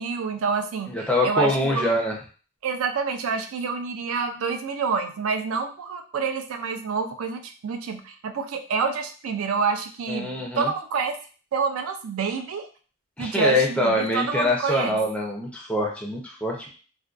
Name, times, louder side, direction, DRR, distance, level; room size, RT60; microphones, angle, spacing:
voice 1, 0.0-2.0 2.6-11.2 11.5-12.7 13.2-15.0, right 5 dB, 75° right, 7 dB, 0.4 m, -28 dB
voice 2, 0.9-2.1 10.1-10.7 13.2-16.7, left 1 dB, 5° left, -2 dB, 0.4 m, -24 dB
2.5 x 2.2 x 2.3 m, 0.39 s
head